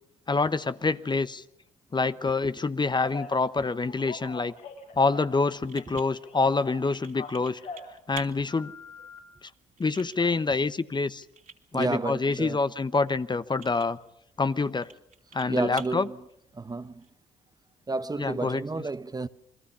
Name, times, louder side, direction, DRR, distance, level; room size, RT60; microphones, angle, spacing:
voice 1, 0.3-1.4 1.9-4.5 4.9-7.6 8.1-8.7 9.4-9.5 9.8-11.2 11.7-14.0 14.4-14.9 15.3-16.1 18.2-18.9, left 3 dB, 25° left, 1.0 m, -26 dB
Telephone, 3.0-3.3 3.8-5.5 5.8-7.9 8.5-9.2, left 4 dB, 75° left, 6.1 m, -42 dB
sound 1, 5.6-17.1, right 7 dB, 55° right, 3.1 m, -51 dB
voice 2, 11.7-12.7 15.5-16.2 16.5-17.1 17.9-19.3, right 3 dB, 25° right, 0.9 m, -31 dB
29.0 x 21.5 x 5.7 m
supercardioid pair, 55°, 17 cm